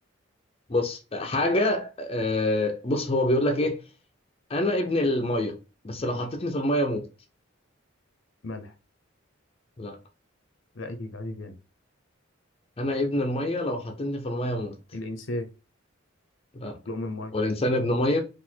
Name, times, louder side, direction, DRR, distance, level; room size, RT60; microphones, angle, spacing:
voice 1, 0.7-3.8 4.5-5.6 5.8-7.1 9.8-10.0 12.8-14.8 16.5-16.7 17.3-18.2, left 1 dB, 30° left, 0.6 m, -26 dB
voice 2, 8.4-8.7 10.7-11.5 14.9-15.5 16.7-17.3, left 2 dB, 70° left, 0.8 m, -35 dB
4.1 x 2.5 x 4.4 m
head